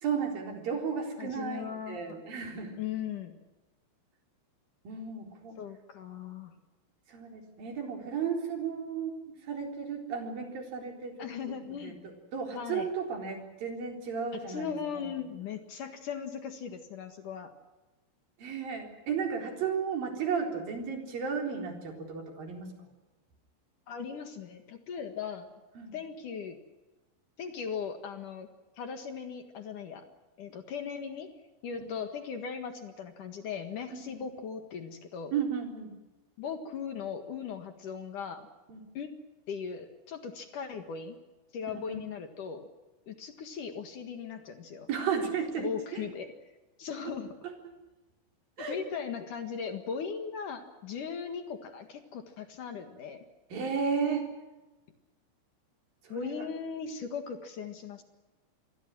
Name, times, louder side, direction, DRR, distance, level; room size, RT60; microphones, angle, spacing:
voice 1, 0.0-2.7 4.9-5.6 7.1-12.0 12.3-14.7 14.9-15.2 18.4-22.7 25.8-26.0 31.8-31.9 33.9-34.1 35.3-35.9 38.7-38.9 41.9-42.0 44.9-46.0 47.1-47.2 47.4-47.5 48.6-48.8 53.5-54.3 56.0-56.5, right 6 dB, 45° right, 3 dB, 5.3 m, -34 dB
voice 2, 1.2-2.2 2.8-3.3 5.6-6.5 11.2-12.0 12.5-12.9 14.5-17.5 23.9-25.5 25.9-26.6 27.4-28.5 28.8-30.0 30.4-31.3 31.6-35.3 36.4-38.5 38.9-39.1 39.5-41.2 41.5-42.7 43.1-44.9 45.6-46.3 46.8-47.3 48.7-53.2 56.1-58.0, left 6 dB, 60° left, 7 dB, 2.3 m, -38 dB
27.5 x 23.0 x 6.2 m, 1.1 s
omnidirectional pair, 5.9 m